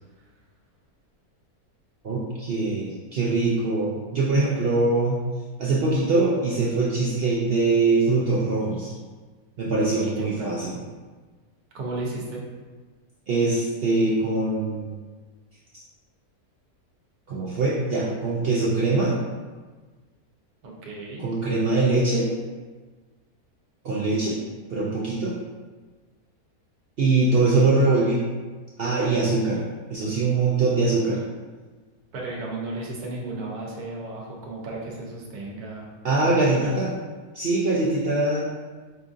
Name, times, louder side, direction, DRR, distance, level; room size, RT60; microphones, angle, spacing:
voice 1, 2.0-5.2 5.6-8.9 9.6-10.8 13.3-14.9 17.3-19.1 21.2-22.3 23.8-24.4 24.7-25.3 27.0-28.2 28.8-29.6 29.9-31.2 36.0-36.9 37.3-38.4, right 3 dB, 65° right, -6 dB, 0.5 m, -22 dB
voice 2, 10.0-10.5 11.7-12.4 20.6-21.2 32.1-35.9 36.5-36.8, right 2 dB, 85° right, -3 dB, 1.3 m, -34 dB
5.4 x 2.4 x 2.5 m, 1.4 s
omnidirectional pair, 1.6 m